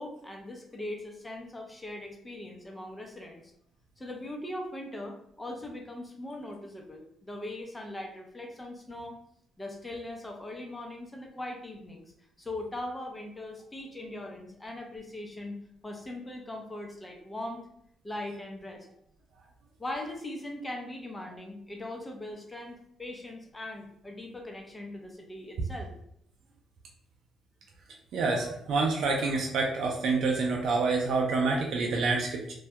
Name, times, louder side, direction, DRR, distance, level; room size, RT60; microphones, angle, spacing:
voice 1, 0.0-3.4 4.0-9.2 9.6-12.1 12.4-15.6 15.8-17.6 18.0-18.9 19.8-25.9, left 1 dB, 15° left, 1 dB, 0.5 m, -40 dB
voice 2, 28.1-32.5, right 3 dB, 70° right, 0 dB, 0.4 m, -27 dB
2.2 x 2.1 x 2.7 m, 0.70 s
cardioid pair, 90°, 0 cm